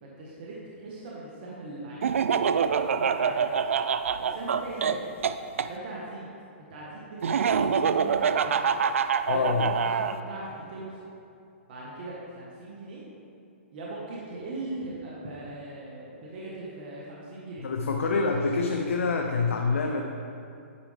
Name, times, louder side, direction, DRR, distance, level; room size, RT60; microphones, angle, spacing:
voice 1, 0.0-2.1 2.7-3.7 4.1-5.0 5.7-6.3 6.6-8.5 9.3-11.0 11.7-13.0 13.7-17.7, right 2 dB, 50° right, -6 dB, 1.4 m, -40 dB
Laughter, 2.0-5.7 7.2-10.2, right 6 dB, 85° right, 0.3 m, -25 dB
voice 2, 9.3-9.7 17.6-20.0, left 4 dB, 85° left, 3 dB, 0.6 m, -26 dB
9.5 x 5.0 x 3.3 m, 2.5 s
hypercardioid pair, 145°, 7 cm